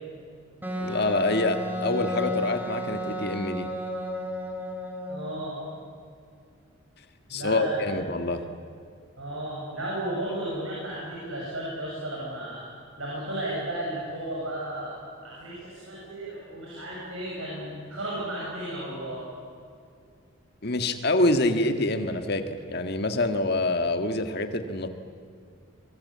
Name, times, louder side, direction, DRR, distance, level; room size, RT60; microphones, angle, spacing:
Wind instrument woodwind instrument, 0.6-5.3, left 1 dB, 10° right, 2.2 m, -32 dB
voice 1, 0.8-3.7 7.3-8.4 20.6-24.9, left 2 dB, 50° left, 7 dB, 1.7 m, -26 dB
voice 2, 5.1-5.6 7.3-8.3 9.2-12.7 13.0-14.9 15.2-19.2, right 1 dB, 75° right, -5 dB, 7.3 m, -34 dB
24.0 x 23.0 x 8.6 m, 2.3 s
head